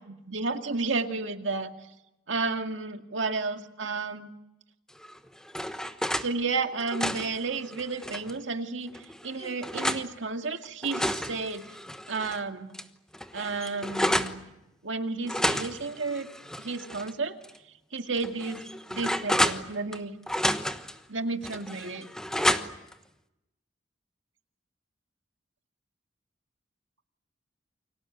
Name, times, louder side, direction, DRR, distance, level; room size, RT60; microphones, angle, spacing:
voice 1, 0.1-1.7 2.3-4.3 6.2-11.6 12.1-12.7 13.3-14.4 14.8-16.3 16.6-17.4 17.9-18.6 18.9-20.1 21.1-22.1, right 4 dB, 80° right, 6 dB, 2.1 m, -32 dB
sound 1, 5.0-6.3 6.7-8.4 8.9-10.1 10.6-12.4 12.7-12.8 13.1-14.4 15.3-17.1 17.4-17.6 18.2-20.0 20.3-21.0 21.4-22.9, equal, 5° left, 1.2 m, -30 dB
29.0 x 24.5 x 8.0 m, 0.91 s
head